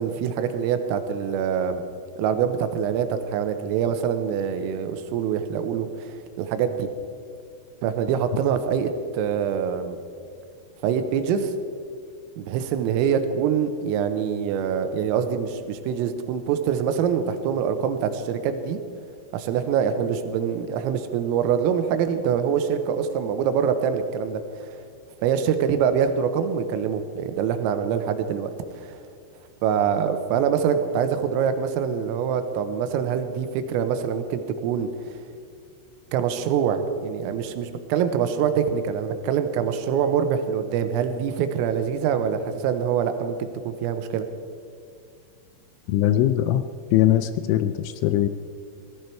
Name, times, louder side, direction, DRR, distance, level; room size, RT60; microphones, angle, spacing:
voice 1, 0.0-1.8 2.2-6.9 7.8-10.0 10.8-11.5 12.4-18.8 19.3-24.8 25.2-29.1 29.6-35.2 36.1-44.3, right 7 dB, 90° right, 9 dB, 3.6 m, -25 dB
voice 2, 45.9-46.6 46.9-48.3, left 12 dB, 85° left, 11 dB, 2.8 m, -21 dB
18.5 x 14.5 x 4.5 m, 2.3 s
omnidirectional pair, 5.8 m